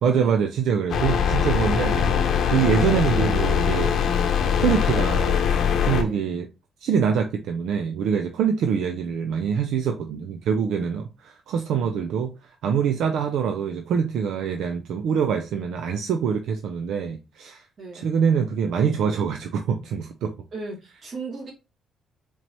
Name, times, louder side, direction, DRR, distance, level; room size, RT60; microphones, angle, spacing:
voice 1, 0.0-2.1 2.5-3.9 4.6-5.4 5.8-6.5 6.8-17.7 17.9-20.3, right 7 dB, 80° right, 0.4 m, -24 dB
sound 1, 0.9-6.0, left 7 dB, 70° left, 0.8 m, -22 dB
voice 2, 20.5-21.5, right 3 dB, 50° right, 1.7 m, -35 dB
4.4 x 2.8 x 2.9 m
cardioid pair, 90°, 0 cm